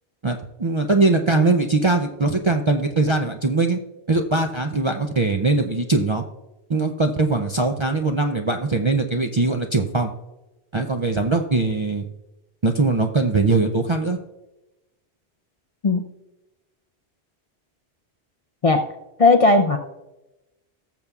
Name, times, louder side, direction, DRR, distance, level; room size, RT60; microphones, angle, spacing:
voice 1, 0.2-3.8 4.1-6.2 6.7-10.1 10.7-12.1 12.6-14.2, right 3 dB, 40° right, 3 dB, 0.4 m, -21 dB
voice 2, 19.2-19.8, left 3 dB, 45° left, 5 dB, 0.5 m, -16 dB
18.0 x 6.9 x 2.4 m, 0.99 s
omnidirectional pair, 1.1 m